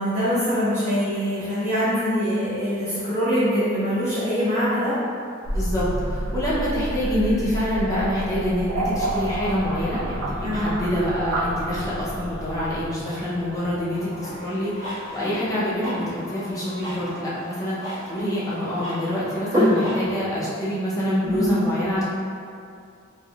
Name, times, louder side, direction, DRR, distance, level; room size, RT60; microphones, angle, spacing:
voice 1, 0.0-5.0 10.4-10.7 21.2-21.5, equal, 40° right, -17 dB, 1.2 m, -23 dB
sound 1, 5.4-15.5, right 1 dB, 90° right, 0.4 m, -30 dB
voice 2, 5.5-22.0, equal, 15° left, -9 dB, 0.6 m, -26 dB
sound 2, 13.9-20.1, left 1 dB, 15° right, 1.0 m, -29 dB
3.4 x 2.2 x 2.3 m, 2.4 s
head